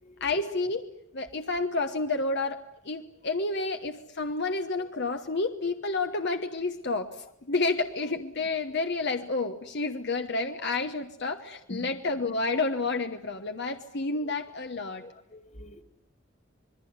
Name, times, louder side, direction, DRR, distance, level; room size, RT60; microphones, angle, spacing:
voice 1, 0.2-0.9 1.1-2.6 2.8-15.0, left 3 dB, 55° left, 1.2 m, -30 dB
voice 2, 14.9-15.8, left 1 dB, 35° left, 1.8 m, -45 dB
26.5 x 21.0 x 9.6 m
head